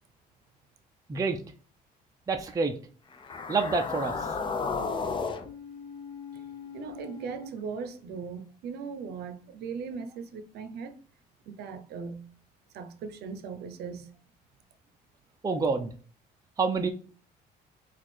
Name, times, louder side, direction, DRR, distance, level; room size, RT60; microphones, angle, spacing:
voice 1, 2.3-2.7 3.5-4.4 15.4-15.9 16.6-16.9, right 4 dB, 20° right, 0.5 m, -27 dB
sound 1, 3.1-7.5, left 4 dB, 30° left, 0.6 m, -35 dB
voice 2, 6.7-11.0 11.5-12.3 12.7-14.1, right 5 dB, 75° right, 0.7 m, -39 dB
4.4 x 2.4 x 4.3 m
cardioid pair, 110°, 17 cm